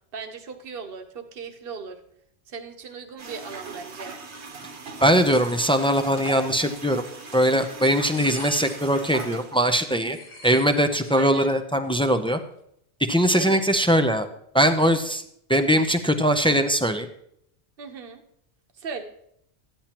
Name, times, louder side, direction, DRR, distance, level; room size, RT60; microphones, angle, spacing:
voice 1, 0.1-2.0 2.5-4.2 9.9-10.2 11.1-11.5 13.3-13.6 17.8-18.2 18.8-19.0, right 5 dB, 60° right, 6 dB, 1.1 m, -37 dB
sound 1, 3.2-9.8, right 3 dB, 85° right, 1.5 m, -39 dB
sound 2, 4.9-6.5 7.1-7.6 7.8-9.0 9.4-9.5 9.9-11.2 11.5-11.6 11.8-12.4, left 2 dB, 85° left, 1.6 m, -44 dB
voice 2, 5.0-7.0 7.3-10.2 10.4-12.4 13.1-14.3 14.5-15.2 15.5-17.1, equal, 5° left, 7 dB, 0.4 m, -21 dB
14.0 x 10.0 x 2.9 m, 0.72 s
omnidirectional pair, 1.1 m